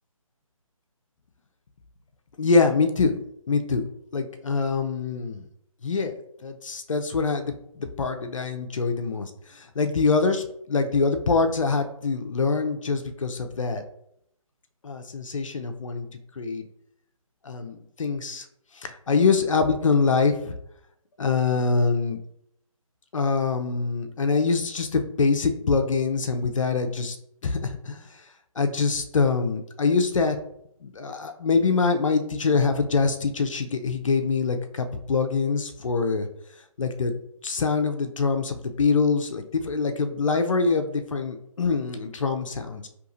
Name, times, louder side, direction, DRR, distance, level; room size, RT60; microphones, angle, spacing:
voice 1, 2.4-3.2 3.5-3.8 4.1-5.4 5.8-6.1 6.4-13.8 14.8-16.1 16.4-16.6 17.4-18.4 18.8-20.6 21.2-22.2 23.1-27.2 27.4-28.0 28.6-30.4 30.8-36.3 36.8-37.1 37.4-42.9, left 4 dB, 65° left, 6 dB, 0.5 m, -24 dB
4.6 x 2.8 x 2.6 m, 0.75 s
figure-of-eight pair, 155°, 18 cm